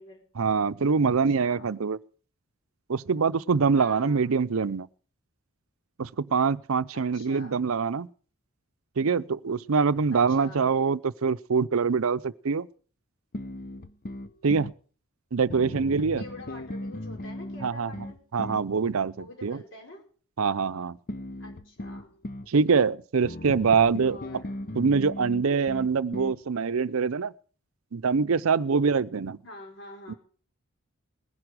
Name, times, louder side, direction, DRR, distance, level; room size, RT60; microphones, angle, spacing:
voice 1, 0.4-2.0 2.9-4.9 6.0-8.1 9.0-12.7 14.4-14.7 15.3-16.2 17.6-17.9 18.3-19.6 20.4-21.0 22.5-24.2 24.8-27.3 27.9-29.4 30.1-30.2, right 5 dB, 80° right, 0.6 m, -24 dB
voice 2, 1.3-1.8 3.7-4.4 6.9-7.7 10.1-10.8 16.2-18.2 19.2-20.0 21.4-22.1 24.0-24.6 29.4-30.2, left 2 dB, 60° left, 5.0 m, -46 dB
sound 1, 13.3-14.8 15.5-18.7 21.1-22.5 23.2-26.4, left 1 dB, 40° left, 0.7 m, -38 dB
19.5 x 11.0 x 4.9 m
head